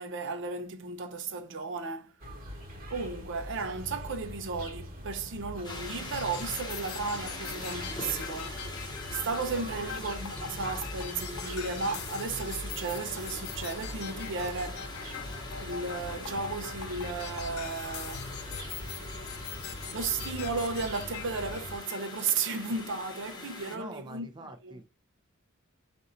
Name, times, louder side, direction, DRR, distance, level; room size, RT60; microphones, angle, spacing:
voice 1, 0.0-2.1 2.9-14.9 15.6-18.3 19.9-24.3 24.6-24.7, right 4 dB, 60° right, 0.7 m, -34 dB
sound 1, 2.2-21.8, equal, 40° right, 1.3 m, -43 dB
sound 2, 5.6-23.8, left 2 dB, 20° left, 0.9 m, -43 dB
sound 3, 6.1-22.1, left 8 dB, 90° left, 0.6 m, -43 dB
voice 2, 9.7-10.0 23.7-24.8, right 1 dB, 20° right, 0.5 m, -46 dB
3.8 x 2.6 x 4.2 m
head